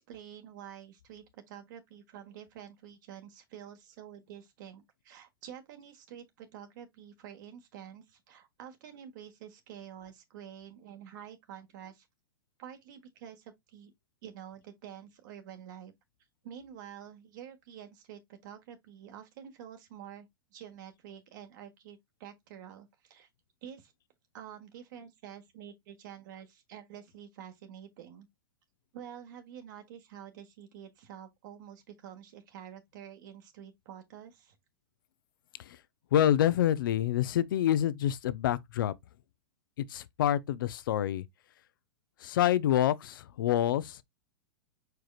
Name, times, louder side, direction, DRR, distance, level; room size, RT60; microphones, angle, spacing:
voice 1, 0.0-12.1 12.6-13.9 14.2-15.9 16.4-23.3 23.6-23.9 24.3-28.3 28.9-34.6, right 9 dB, 60° right, 1.4 m, -48 dB
voice 2, 36.1-38.9 39.8-41.3 42.2-44.0, left 11 dB, 70° left, 0.6 m, -27 dB
4.9 x 4.6 x 2.3 m
hypercardioid pair, 110°, 12 cm